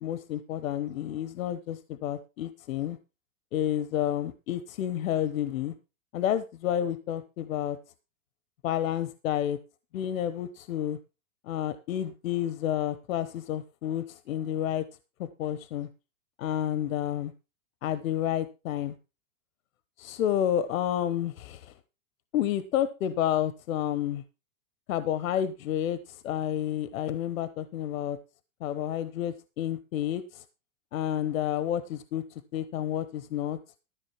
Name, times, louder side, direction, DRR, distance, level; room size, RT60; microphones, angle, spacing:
voice 1, 0.0-3.0 3.5-5.7 6.1-7.8 8.6-9.6 9.9-11.0 11.5-14.8 15.2-15.9 16.4-17.3 17.8-18.9 20.0-21.7 22.3-24.2 24.9-28.2 28.6-30.4 30.9-32.2 32.5-33.6, left 11 dB, 75° left, 14 dB, 1.0 m, -30 dB
13.5 x 6.3 x 5.9 m, 0.30 s
supercardioid pair, 145°, 40 cm